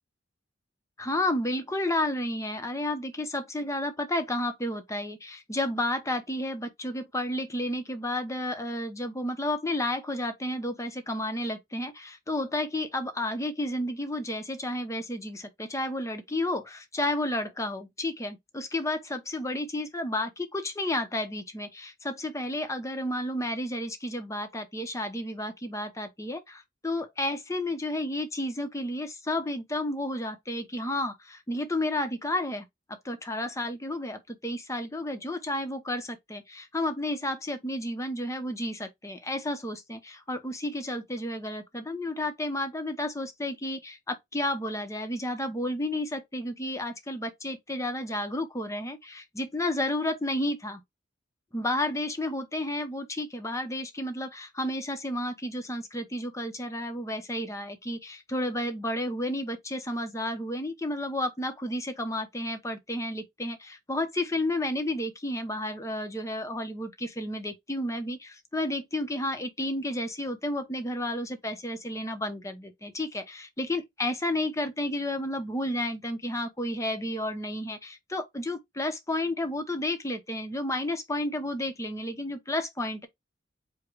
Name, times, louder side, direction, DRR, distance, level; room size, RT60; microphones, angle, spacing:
voice 1, 1.0-32.7 33.0-50.8 51.5-83.1, left 1 dB, 15° left, 0.7 m, -31 dB
4.9 x 2.2 x 4.6 m
head